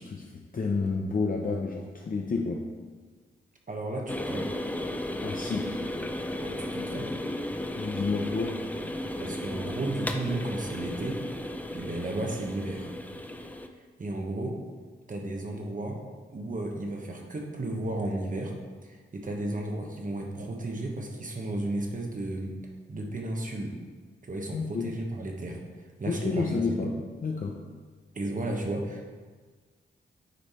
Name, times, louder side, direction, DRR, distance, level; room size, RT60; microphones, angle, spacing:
voice 1, 0.0-2.6 5.2-5.7 7.8-8.6 24.5-24.9 26.1-27.6, left 4 dB, 45° left, 0 dB, 0.7 m, -30 dB
voice 2, 3.7-4.5 6.4-7.1 9.2-11.2 11.7-12.9 14.0-14.6 15.1-16.0 16.3-18.5 18.8-22.5 22.9-23.8 24.2-25.6 26.0-26.9 28.1-29.1, right 2 dB, 40° right, 1 dB, 1.2 m, -33 dB
sound 1, 4.1-13.7, left 1 dB, 10° left, 0.5 m, -35 dB
9.4 x 3.3 x 4.3 m, 1.5 s
cardioid pair, 65°, 20 cm